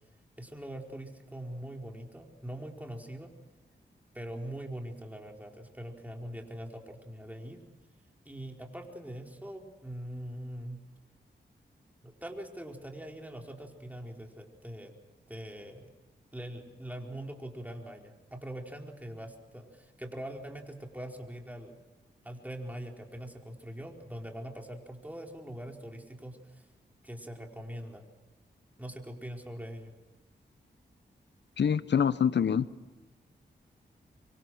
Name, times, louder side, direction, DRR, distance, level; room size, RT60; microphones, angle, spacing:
voice 1, 0.4-3.3 4.1-7.6 8.2-10.8 12.0-14.9 15.3-15.9 16.3-21.8 22.2-26.7 27.0-28.1 28.8-29.9, right 1 dB, 10° right, 4.6 m, -42 dB
voice 2, 31.6-32.7, left 7 dB, 70° left, 1.0 m, -25 dB
25.0 x 24.5 x 6.4 m
cardioid pair, 55°, 19 cm